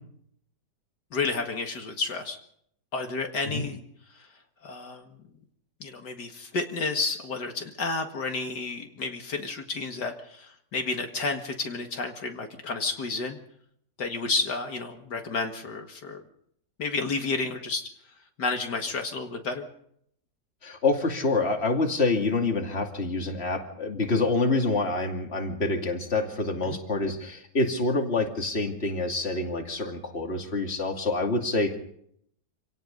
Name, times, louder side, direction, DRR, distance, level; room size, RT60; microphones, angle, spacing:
voice 1, 1.1-2.4 2.9-3.8 4.1-4.3 4.6-5.1 5.8-13.4 14.0-16.2 16.8-17.9 18.4-19.7 26.7-26.8, left 3 dB, 75° left, 4 dB, 2.5 m, -31 dB
voice 2, 20.6-31.8, left 3 dB, 35° left, 3 dB, 2.8 m, -27 dB
27.0 x 18.0 x 5.3 m, 0.68 s
omnidirectional pair, 1.9 m